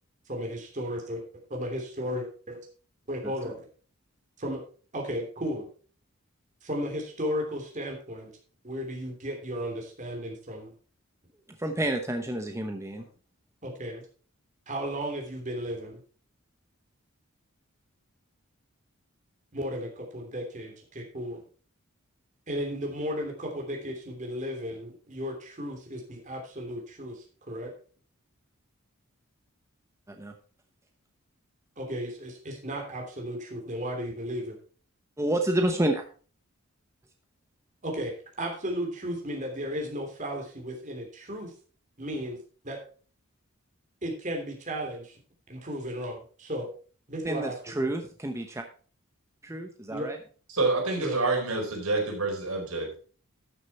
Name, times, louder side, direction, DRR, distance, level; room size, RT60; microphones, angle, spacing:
voice 1, 0.3-1.2 1.5-2.6 3.1-3.6 4.4-4.6 4.9-5.7 6.6-8.3 8.6-10.7 13.0-13.1 13.6-14.0 14.7-16.0 19.5-21.4 22.5-27.7 31.8-34.6 37.8-38.1 38.4-41.5 42.0-42.4 42.6-42.8 44.0-45.1 45.5-46.7 47.1-47.9 49.9-50.1 51.0-51.2, equal, 35° right, 1 dB, 3.0 m, -34 dB
voice 2, 11.6-13.0 30.1-30.3 35.2-36.0 47.2-48.6 49.4-50.2, right 1 dB, 15° right, 4 dB, 0.8 m, -29 dB
voice 3, 50.5-53.0, right 3 dB, 85° right, 0 dB, 4.5 m, -27 dB
12.5 x 6.6 x 4.3 m, 0.40 s
head